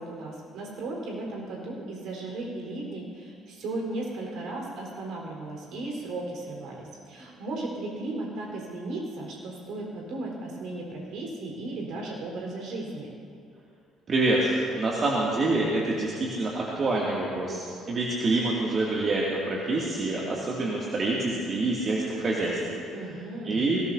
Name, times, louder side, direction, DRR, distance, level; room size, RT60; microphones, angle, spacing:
voice 1, 0.0-13.1 22.9-23.7, right 2 dB, 60° right, -1 dB, 4.3 m, -36 dB
voice 2, 14.1-23.8, right 2 dB, 40° right, -4 dB, 2.4 m, -27 dB
23.0 x 18.0 x 2.8 m, 2.3 s
figure-of-eight pair, 50°, 0 cm